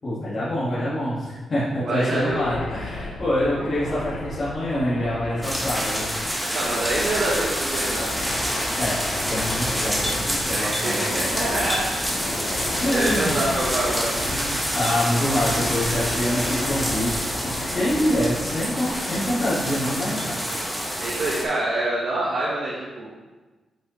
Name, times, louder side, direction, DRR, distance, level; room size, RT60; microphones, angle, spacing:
voice 1, 0.0-6.6 8.8-9.0 9.3-11.2 12.8-13.4 14.3-20.4, left 1 dB, 35° left, -12 dB, 1.9 m, -26 dB
voice 2, 1.8-2.4 6.5-8.0 10.5-11.8 12.7-14.1 21.0-23.1, right 2 dB, 60° right, -6 dB, 1.3 m, -26 dB
sound 1, 2.1-21.0, left 2 dB, 70° left, 1.0 m, -35 dB
sound 2, 5.4-21.4, equal, ahead, 1.0 m, -27 dB
7.4 x 5.5 x 3.2 m, 1.2 s
wide cardioid pair, 145°, 0 cm